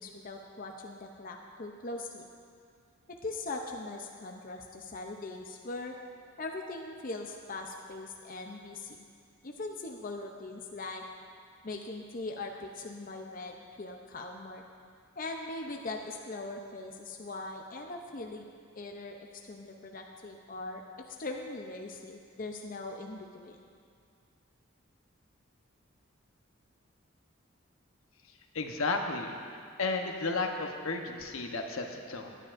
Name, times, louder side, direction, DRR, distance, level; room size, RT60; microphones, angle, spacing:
voice 1, 0.0-2.3 3.2-6.0 6.4-9.1 9.4-11.0 11.6-14.6 15.2-18.4 18.8-20.8 21.1-23.6, left 2 dB, 40° left, 2 dB, 0.6 m, -41 dB
voice 2, 28.5-32.4, left 3 dB, 85° left, 3 dB, 1.0 m, -33 dB
18.5 x 9.9 x 2.6 m, 2.3 s
head